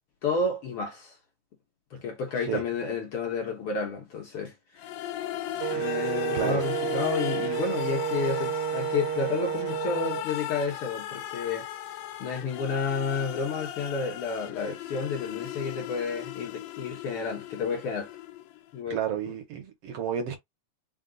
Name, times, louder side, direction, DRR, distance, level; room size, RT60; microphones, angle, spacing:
voice 1, 0.2-1.1 1.9-4.5 5.7-11.7 12.2-18.1 18.7-19.0, left 4 dB, 60° left, 1.6 m, -31 dB
sound 1, 4.8-18.6, left 13 dB, 75° left, 1.7 m, -37 dB
Wind instrument woodwind instrument, 5.6-10.2, right 10 dB, 80° right, 1.9 m, -30 dB
voice 2, 18.9-20.4, right 9 dB, 65° right, 1.8 m, -31 dB
4.6 x 2.4 x 3.8 m
omnidirectional pair, 3.3 m